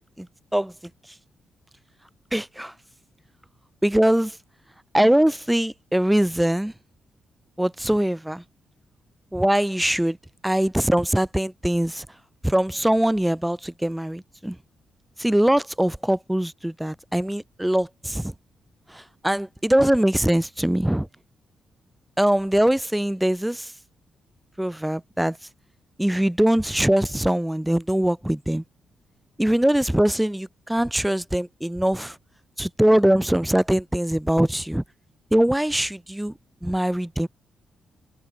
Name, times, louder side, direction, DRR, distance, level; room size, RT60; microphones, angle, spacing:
voice 1, 2.3-2.7 3.8-4.4 4.9-6.7 7.6-8.4 9.3-10.2 10.4-12.1 12.4-14.6 15.2-18.3 18.9-21.1 22.2-23.7 24.6-25.4 26.0-28.6 29.4-32.1 32.6-34.8 35.3-36.3 36.6-37.3, right 1 dB, 5° right, 3.3 m, -22 dB
cardioid pair, 130°, 0 cm